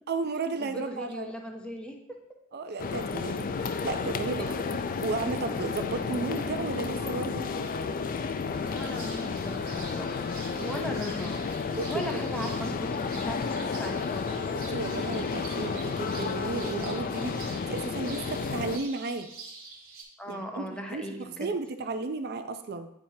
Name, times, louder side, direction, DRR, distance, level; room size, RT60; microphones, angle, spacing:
voice 1, 0.1-1.3 2.5-7.5 10.5-10.9 11.7-12.4 14.5-17.4 17.7-19.3 20.3-22.9, right 3 dB, 50° right, 9 dB, 0.5 m, -34 dB
voice 2, 0.6-2.0 4.4-4.5 8.6-11.6 11.8-14.4 17.4-17.5 20.2-21.5, equal, 5° left, 2 dB, 0.7 m, -38 dB
sound 1, 2.8-18.8, left 5 dB, 40° left, 0.3 m, -32 dB
sound 2, 8.5-20.0, right 3 dB, 75° right, 1.2 m, -46 dB
8.8 x 4.4 x 2.7 m, 0.76 s
head